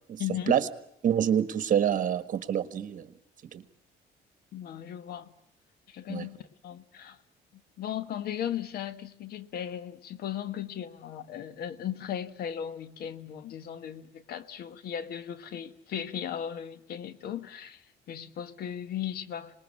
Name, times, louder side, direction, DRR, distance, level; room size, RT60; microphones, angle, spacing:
voice 1, 0.2-0.6 4.5-5.3 5.9-7.2 7.5-19.6, left 10 dB, 70° left, 1.4 m, -37 dB
voice 2, 1.0-3.1 3.5-3.6 6.1-6.3, right 9 dB, 50° right, 1.6 m, -26 dB
26.5 x 20.5 x 8.6 m
cardioid pair, 110°, 17 cm